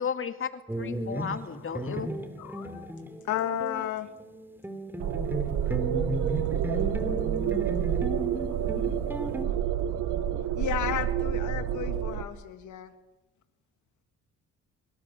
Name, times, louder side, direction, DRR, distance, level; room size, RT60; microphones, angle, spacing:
voice 1, 0.0-2.1, left 7 dB, 45° left, 9 dB, 2.2 m, -34 dB
sound 1, 0.7-3.9 4.2-9.4, equal, 5° right, 3.2 m, -35 dB
voice 2, 2.4-2.9 3.3-4.1 8.5-8.7 10.6-12.9, left 10 dB, 75° left, 9 dB, 2.5 m, -33 dB
sound 2, 5.0-12.2, right 10 dB, 85° right, 1.7 m, -28 dB
voice 3, 5.6-6.9 9.4-10.6, right 4 dB, 50° right, 6 dB, 7.5 m, -53 dB
24.5 x 24.5 x 7.6 m, 1.0 s
cardioid pair, 90°, 30 cm